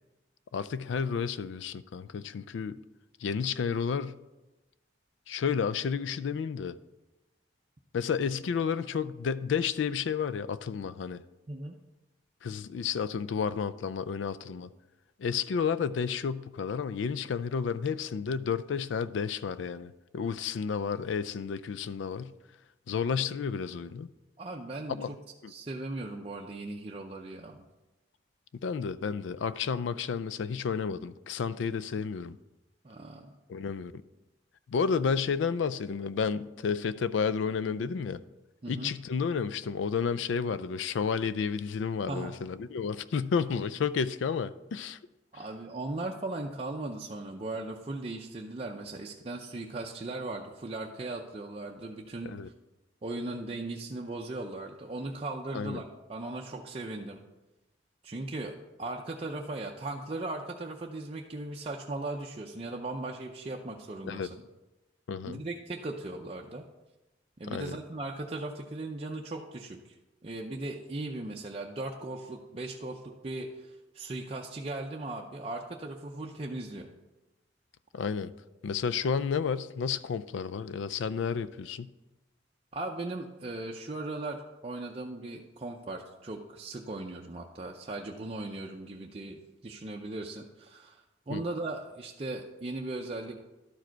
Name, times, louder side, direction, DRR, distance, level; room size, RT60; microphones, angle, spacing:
voice 1, 0.5-2.8 3.2-4.2 5.3-6.8 7.9-11.2 12.4-14.7 15.2-22.3 22.9-24.1 24.9-25.1 25.4-25.5 28.6-32.4 33.5-33.9 34.7-38.2 38.7-45.0 52.2-52.5 55.5-55.8 64.0-64.3 65.1-65.4 67.5-67.8 77.9-78.3 78.6-81.9 91.3-91.4, left 6 dB, 80° left, 0.4 m, -31 dB
voice 2, 24.4-25.2 25.5-27.7 32.8-33.3 38.6-38.9 42.1-42.3 45.3-52.4 53.0-57.2 58.0-64.4 65.2-66.6 67.4-69.9 70.2-76.9 82.7-93.4, right 2 dB, 30° right, 0.5 m, -38 dB
12.0 x 4.9 x 4.5 m
head